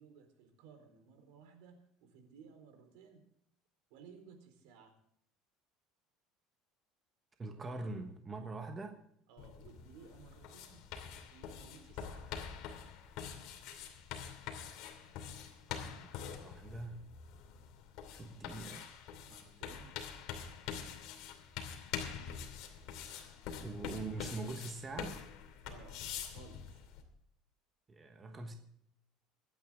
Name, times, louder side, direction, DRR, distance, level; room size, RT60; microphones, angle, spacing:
voice 1, 0.0-3.2 3.9-4.9 9.3-10.8 11.3-12.3 19.2-19.9 25.7-26.0 26.3-26.8, right 6 dB, 75° right, 6 dB, 4.0 m, -58 dB
voice 2, 7.4-9.0 15.7-17.0 18.1-18.9 23.2-23.4 23.6-25.2 27.9-28.5, right 3 dB, 15° right, 5 dB, 1.2 m, -43 dB
sound 1, 9.4-27.0, left 8 dB, 55° left, 2.7 m, -45 dB
24.5 x 9.5 x 3.7 m, 0.71 s
cardioid pair, 170°, 0 cm